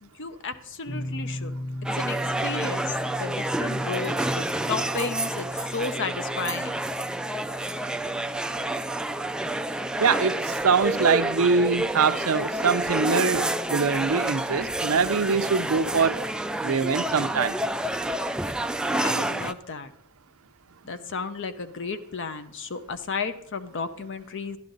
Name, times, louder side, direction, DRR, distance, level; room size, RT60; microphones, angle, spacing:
voice 1, 0.0-1.5 1.9-6.8 18.9-19.9 20.8-24.6, left 4 dB, 60° left, 0.7 m, -33 dB
sound 1, 0.9-13.8, left 1 dB, 40° left, 1.2 m, -39 dB
sound 2, 1.8-19.5, right 1 dB, 5° right, 0.3 m, -29 dB
voice 2, 10.0-16.3 16.6-17.6, right 5 dB, 75° right, 0.6 m, -23 dB
11.5 x 11.5 x 4.0 m
head